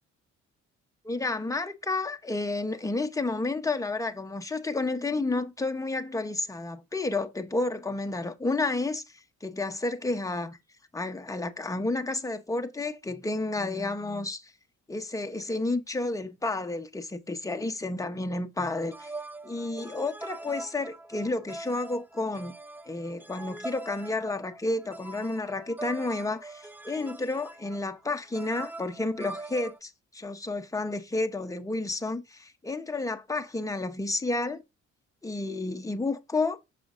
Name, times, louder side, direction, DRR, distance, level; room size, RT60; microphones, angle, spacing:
voice 1, 1.0-9.0 9.4-10.6 10.9-14.5 14.9-19.1 19.4-22.6 22.9-34.6 35.2-36.6, left 2 dB, 10° left, 0.8 m, -31 dB
sound 1, 18.7-29.8, right 2 dB, 5° right, 0.4 m, -43 dB
6.8 x 5.9 x 2.6 m
cardioid pair, 90°, 30 cm